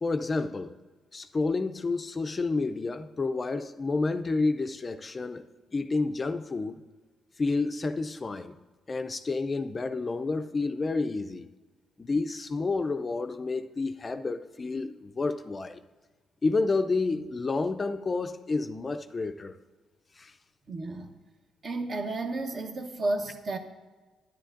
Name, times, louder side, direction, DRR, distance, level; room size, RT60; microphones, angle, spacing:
voice 1, 0.0-0.8 1.1-5.5 5.7-6.8 7.4-8.5 8.9-11.5 12.0-15.8 16.4-19.6 20.2-20.3, left 3 dB, 30° left, 0.4 m, -30 dB
voice 2, 20.7-21.1 21.6-23.6, right 2 dB, 45° right, 0.9 m, -32 dB
10.0 x 10.0 x 2.5 m
cardioid pair, 90°, 0 cm